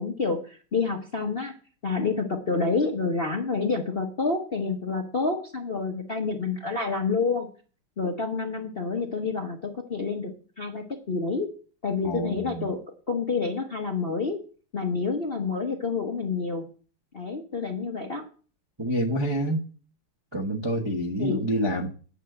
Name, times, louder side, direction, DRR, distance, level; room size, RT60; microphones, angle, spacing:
voice 1, 0.0-1.5 1.8-7.5 8.0-11.5 11.8-12.8 13.1-14.4 14.7-16.6 17.1-18.2 21.2-21.4, left 4 dB, 40° left, 3 dB, 0.8 m, -28 dB
voice 2, 12.0-12.7 18.8-19.7 20.3-21.9, equal, 20° right, -2 dB, 0.7 m, -27 dB
9.1 x 5.1 x 7.9 m, 0.40 s
omnidirectional pair, 2.3 m